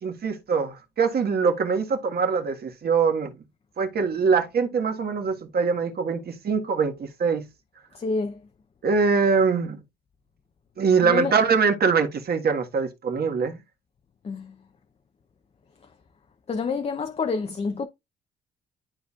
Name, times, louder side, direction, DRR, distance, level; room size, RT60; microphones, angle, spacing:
voice 1, 0.0-3.3 3.8-7.5 8.8-9.8 10.8-13.6, right 5 dB, 50° right, 1.6 m, -23 dB
voice 2, 7.9-8.4 11.0-11.4 14.2-14.5 16.5-17.9, left 4 dB, 30° left, 0.7 m, -28 dB
11.5 x 4.1 x 2.4 m
cardioid pair, 90°, 20 cm